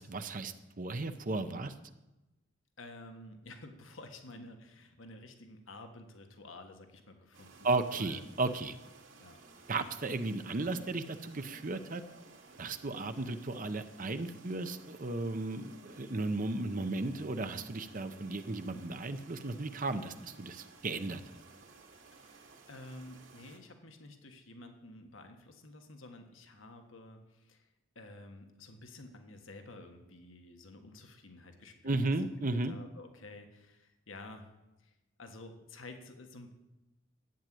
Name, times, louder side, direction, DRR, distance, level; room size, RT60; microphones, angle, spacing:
voice 1, 0.0-1.7 7.6-8.7 9.7-12.0 12.6-21.2 31.8-32.8, right 2 dB, 40° right, 9 dB, 0.7 m, -35 dB
voice 2, 2.8-8.2 9.2-9.4 13.1-13.2 22.1-27.7 27.9-32.1 32.5-34.5 34.8-36.5, left 2 dB, 80° left, 5 dB, 1.5 m, -51 dB
sound 1, 7.3-23.6, right 4 dB, 70° right, 2.6 m, -57 dB
12.0 x 8.9 x 7.7 m, 1.0 s
head